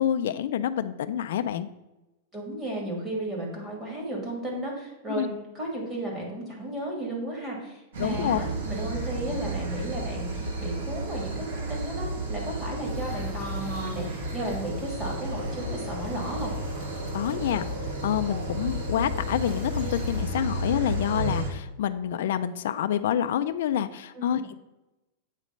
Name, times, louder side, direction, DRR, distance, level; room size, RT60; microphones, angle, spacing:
voice 1, 0.0-1.7 5.2-5.3 8.0-8.4 17.1-17.6 18.0-24.6, left 10 dB, 65° left, 10 dB, 0.3 m, -27 dB
voice 2, 2.3-16.5 24.1-24.4, right 1 dB, 10° right, -2 dB, 1.5 m, -34 dB
sound 1, 7.9-21.5, right 1 dB, 85° right, 1.7 m, -32 dB
sound 2, 12.8-20.3, left 5 dB, 10° left, 0.6 m, -45 dB
8.2 x 3.2 x 5.1 m, 1.0 s
supercardioid pair, 175°, 0 cm